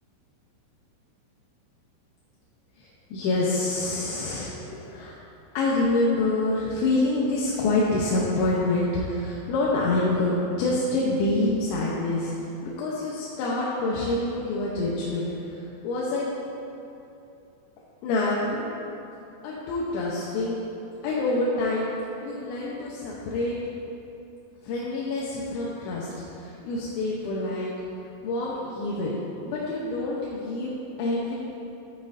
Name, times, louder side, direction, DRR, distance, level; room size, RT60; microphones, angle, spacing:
voice 1, 2.8-5.1 5.5-16.3 18.0-18.6 19.4-20.6 21.0-21.9 22.2-23.6 24.6-27.7 28.2-29.1 29.4-31.4, left 2 dB, 85° left, -5 dB, 3.3 m, -27 dB
14.0 x 8.7 x 2.7 m, 2.8 s
omnidirectional pair, 5.1 m